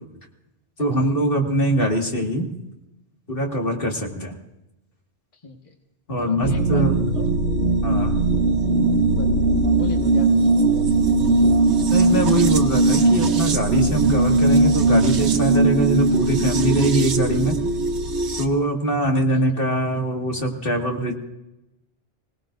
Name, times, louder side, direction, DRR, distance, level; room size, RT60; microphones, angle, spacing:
voice 1, 0.8-2.5 3.3-4.3 6.1-7.0 7.8-8.2 11.9-17.6 18.4-21.1, right 1 dB, 55° left, 0 dB, 2.3 m, -22 dB
voice 2, 5.3-5.7 6.2-6.8 7.1-7.3 9.1-9.3 9.8-10.9 19.3-19.4, left 3 dB, 30° left, 1 dB, 1.4 m, -37 dB
sound 1, 6.4-18.4, right 3 dB, 80° right, 1.3 m, -19 dB
25.5 x 18.0 x 2.6 m, 0.91 s
omnidirectional pair, 1.1 m